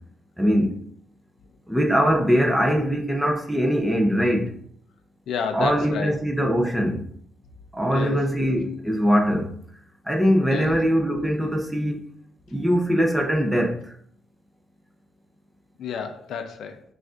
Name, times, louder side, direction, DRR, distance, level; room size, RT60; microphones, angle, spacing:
voice 1, 0.4-0.8 1.7-4.5 5.5-7.0 7.7-9.5 10.0-12.0 12.5-13.9, equal, 5° right, 0.5 m, -22 dB
voice 2, 5.3-6.2 7.9-8.2 10.5-10.7 15.8-16.8, left 6 dB, 65° left, 0.4 m, -30 dB
6.1 x 2.4 x 2.4 m
cardioid pair, 180°, 0 cm